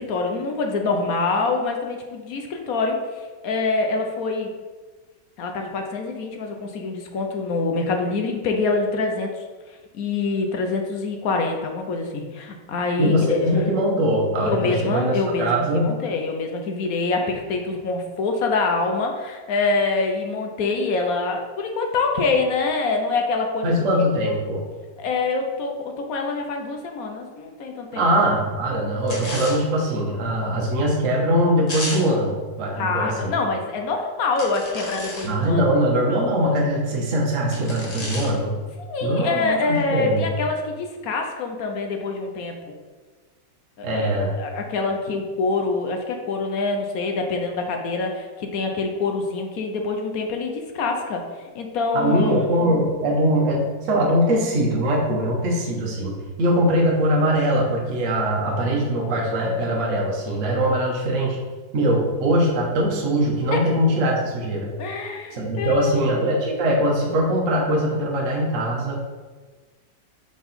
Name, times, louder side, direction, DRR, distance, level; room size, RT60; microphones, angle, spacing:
voice 1, 0.0-4.5 5.4-13.6 14.4-24.0 25.0-28.0 32.7-35.6 38.8-42.6 43.8-52.6 63.5-63.6 64.8-66.1, left 3 dB, 65° left, 3 dB, 1.0 m, -25 dB
voice 2, 13.0-16.0 23.6-24.6 27.9-33.3 35.2-38.5 39.0-40.2 43.8-44.3 51.9-56.1 56.4-61.4 61.7-64.7 65.3-69.0, equal, 50° right, -2 dB, 1.1 m, -22 dB
sound 1, 29.1-29.6 31.7-32.1 34.4-35.4 37.5-38.4, left 1 dB, 25° left, 1.0 m, -32 dB
6.0 x 3.8 x 4.1 m, 1.4 s
omnidirectional pair, 2.0 m